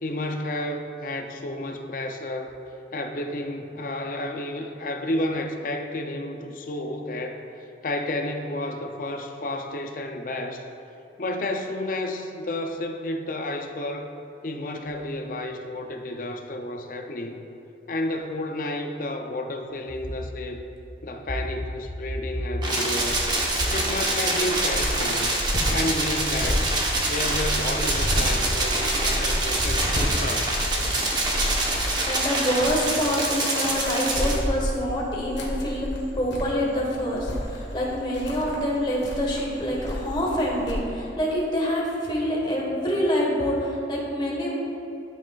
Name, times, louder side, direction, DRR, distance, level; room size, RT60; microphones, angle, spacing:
voice 1, 0.0-2.6 2.9-7.5 7.8-10.6 11.2-14.1 14.4-17.5 17.9-20.7 21.0-23.2 23.7-26.7 27.0-30.5, left 1 dB, 50° left, 5 dB, 0.5 m, -31 dB
sound 1, 22.6-34.4, right 2 dB, 25° right, 0.9 m, -26 dB
Cricket, 23.0-40.7, equal, 85° left, 1.5 m, -31 dB
voice 2, 32.0-35.9 36.1-44.5, equal, 25° left, -3 dB, 1.4 m, -26 dB
13.0 x 6.2 x 2.4 m, 2.9 s
head